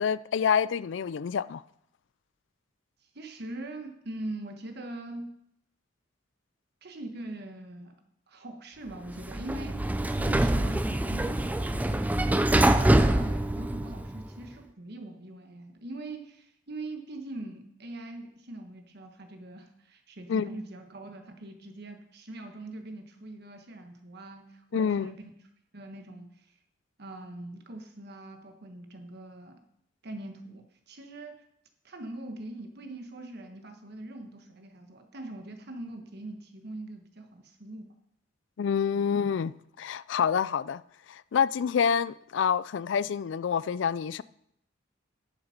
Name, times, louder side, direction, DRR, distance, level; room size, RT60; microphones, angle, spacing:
voice 1, 0.0-1.6 20.3-20.5 24.7-25.1 38.6-40.8 41.1-44.2, left 7 dB, 65° left, 0.3 m, -27 dB
voice 2, 3.1-5.3 6.8-7.9 8.3-9.9 10.2-12.3 12.6-25.3 25.7-26.3 27.0-29.6 30.0-31.4 31.8-37.8 38.9-39.0, right 2 dB, 55° right, 1.3 m, -42 dB
Sliding door, 9.1-14.3, right 1 dB, 10° right, 0.4 m, -25 dB
10.5 x 7.1 x 5.2 m
head